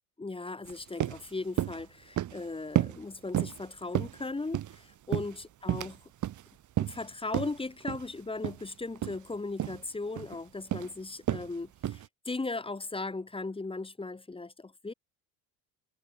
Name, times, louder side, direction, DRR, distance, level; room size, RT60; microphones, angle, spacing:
voice 1, 0.2-6.0 6.8-14.9, left 3 dB, 15° left, 2.3 m, -37 dB
sound 1, 0.7-0.8 1.0-1.2 1.6-1.8 2.2-2.4 2.8-3.0 3.3-3.6 3.9-4.8 5.1-6.0 6.2-6.4 6.8-7.0 7.3-7.5 7.9-8.1 8.4-8.6 9.0-9.2 9.6-9.8 10.2-10.4 10.7-10.9 11.3-11.5 11.8-12.1, right 12 dB, 45° right, 1.8 m, -31 dB
supercardioid pair, 100°, 40 cm